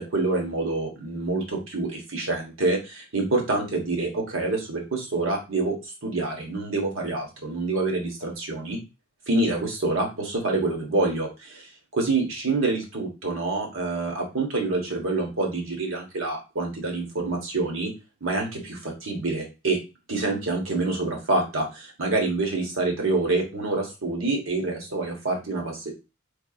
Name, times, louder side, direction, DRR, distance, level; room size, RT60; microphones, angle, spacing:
voice 1, 0.0-8.8 9.3-17.9 18.2-19.8 20.1-25.9, right 3 dB, 80° right, 1 dB, 1.4 m, -27 dB
3.9 x 3.4 x 2.4 m, 0.28 s
head